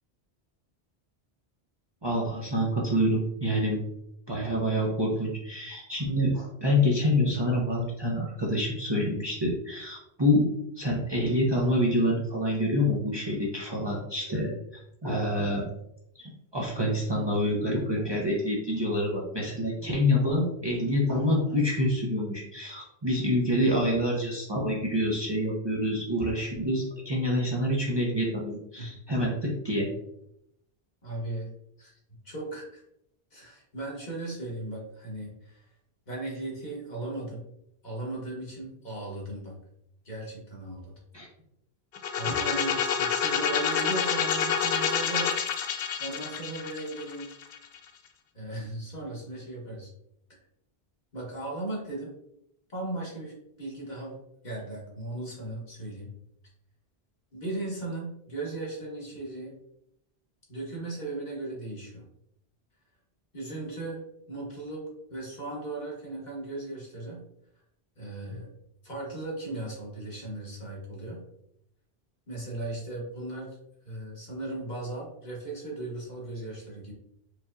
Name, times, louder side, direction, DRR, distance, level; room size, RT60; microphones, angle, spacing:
voice 1, 2.0-3.8 4.3-10.5 10.8-14.5 15.0-15.6 16.2-29.9 41.1-41.3, left 1 dB, 30° right, -3 dB, 0.6 m, -27 dB
voice 2, 31.0-31.5 31.8-32.8 33.3-35.6 36.1-37.4 37.8-39.5 40.0-40.9 42.2-45.4 46.0-47.3 48.3-49.9 50.3-50.4 51.1-52.1 52.7-54.2 54.4-56.1 57.3-59.5 60.5-62.0 63.3-64.0 64.3-64.8 65.1-67.2 68.0-68.5 68.8-71.2 72.3-73.6 73.8-76.9, right 2 dB, 45° left, -3 dB, 1.3 m, -37 dB
sound 1, 41.9-47.8, left 7 dB, 70° left, 0.8 m, -28 dB
4.7 x 2.9 x 2.5 m, 0.78 s
omnidirectional pair, 1.1 m